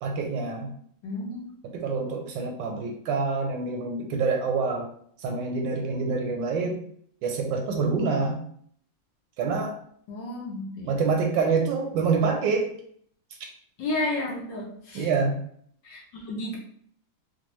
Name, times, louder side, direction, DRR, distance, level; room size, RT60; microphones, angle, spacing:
voice 1, 0.0-0.7 1.6-4.9 5.2-6.8 7.2-8.4 9.4-9.8 10.9-12.7 14.9-15.4, right 4 dB, 75° right, 3 dB, 1.1 m, -26 dB
voice 2, 1.0-1.5 10.1-10.9 13.8-15.1 15.8-16.6, left 2 dB, 65° left, -2 dB, 1.2 m, -32 dB
4.3 x 2.2 x 3.0 m, 0.62 s
omnidirectional pair, 2.3 m